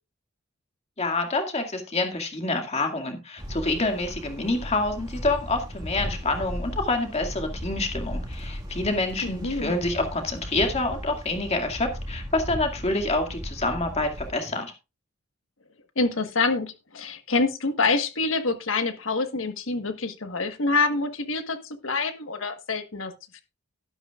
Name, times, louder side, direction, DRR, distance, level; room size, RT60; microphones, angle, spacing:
voice 1, 1.0-14.7, left 2 dB, 30° left, 4 dB, 2.1 m, -27 dB
sound 1, 3.4-14.3, equal, 20° right, 1.8 m, -36 dB
voice 2, 9.2-9.7 15.9-23.4, left 3 dB, 75° left, 8 dB, 1.4 m, -26 dB
12.0 x 12.0 x 2.4 m, 0.27 s
head